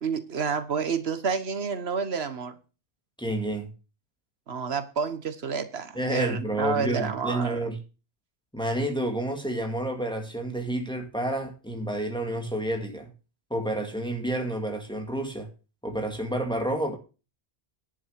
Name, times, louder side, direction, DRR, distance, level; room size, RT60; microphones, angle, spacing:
voice 1, 0.0-2.6 4.5-7.7, right 5 dB, 80° right, 1.4 m, -29 dB
voice 2, 3.2-3.7 5.9-7.8 8.5-13.1 13.5-15.5 15.8-16.9, right 1 dB, 5° left, 2.1 m, -29 dB
10.5 x 6.4 x 6.5 m
omnidirectional pair, 1.1 m